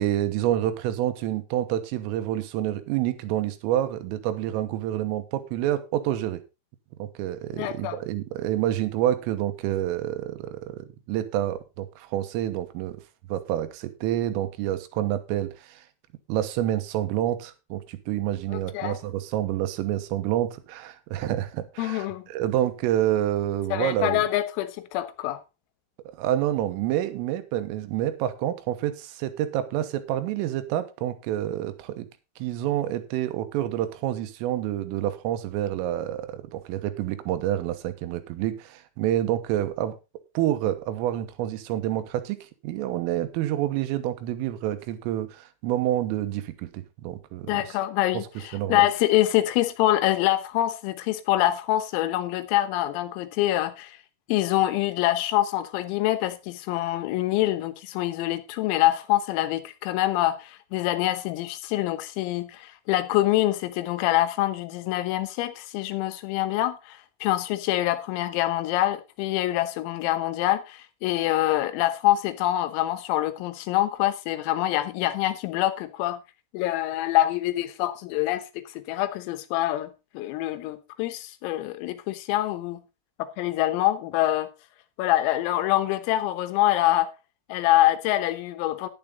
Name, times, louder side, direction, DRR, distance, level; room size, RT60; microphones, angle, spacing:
voice 1, 0.0-6.4 7.0-13.0 13.3-15.8 16.3-24.2 26.1-32.1 32.4-40.0 40.4-47.8 48.1-48.3 48.5-48.9, right 12 dB, 80° right, 3.6 m, -28 dB
voice 2, 7.5-8.0 18.5-19.0 21.8-22.3 23.7-25.4 47.5-54.0 54.3-76.2 76.5-78.4 78.7-82.8 83.2-84.5 85.0-87.1 87.5-88.9, left 15 dB, 85° left, 3.7 m, -25 dB
10.5 x 10.5 x 3.8 m
omnidirectional pair, 5.9 m